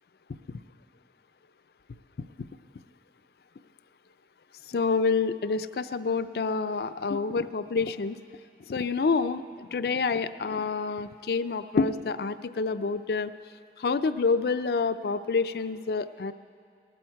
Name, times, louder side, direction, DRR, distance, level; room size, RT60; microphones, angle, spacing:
voice 1, 4.7-8.2 8.7-13.3 13.8-16.3, left 4 dB, 60° left, 13 dB, 0.4 m, -27 dB
18.5 x 12.0 x 4.6 m, 2.3 s
head